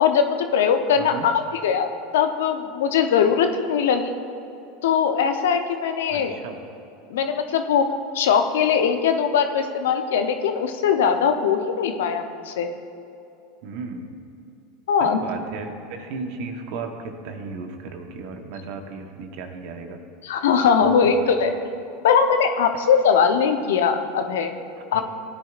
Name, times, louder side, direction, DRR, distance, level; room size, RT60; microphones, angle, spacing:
voice 1, 0.0-1.9 2.1-4.1 4.8-6.3 7.1-7.8 8.1-12.7 14.9-15.2 20.2-21.5 22.0-24.5 24.9-25.0, left 7 dB, 75° left, 7 dB, 0.8 m, -20 dB
voice 2, 1.0-1.3 6.1-6.6 13.6-14.3 15.0-20.0 20.8-21.1 24.9-25.0, right 4 dB, 65° right, 5 dB, 1.2 m, -35 dB
17.0 x 10.0 x 2.5 m, 2.7 s
hypercardioid pair, 90°, 0 cm